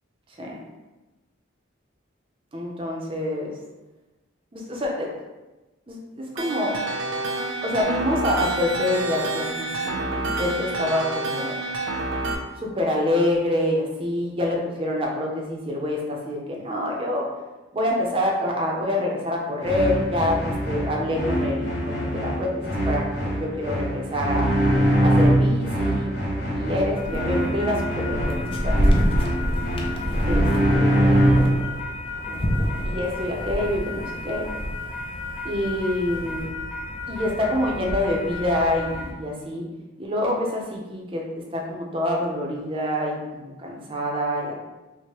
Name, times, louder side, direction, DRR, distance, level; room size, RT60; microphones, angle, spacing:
voice 1, 2.5-3.5 4.5-5.1 5.9-6.8 7.6-11.5 12.6-17.3 17.7-23.1 23.3-24.5 25.0-26.1 26.5-28.8 30.3-30.5 30.7-31.4 32.8-34.4 35.4-36.5 37.1-39.7 40.0-44.5, left 1 dB, 25° right, -1 dB, 0.5 m, -26 dB
sound 1, 6.4-12.4, right 2 dB, 75° right, 0.4 m, -28 dB
sound 2, 19.6-31.6, right 1 dB, 55° left, 0.8 m, -23 dB
sound 3, 27.0-39.1, left 1 dB, 30° left, 0.4 m, -28 dB
4.5 x 2.1 x 2.9 m, 1.1 s
head